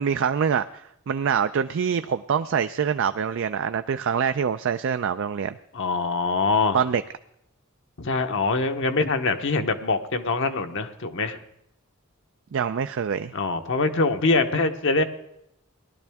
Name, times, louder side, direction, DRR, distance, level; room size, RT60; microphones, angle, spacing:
voice 1, 0.0-5.5 6.7-7.0 12.5-13.3, right 7 dB, 60° right, 10 dB, 0.4 m, -25 dB
voice 2, 5.7-6.8 8.0-11.4 13.3-15.0, left 3 dB, 60° left, 6 dB, 0.9 m, -24 dB
18.5 x 12.0 x 3.5 m, 0.78 s
head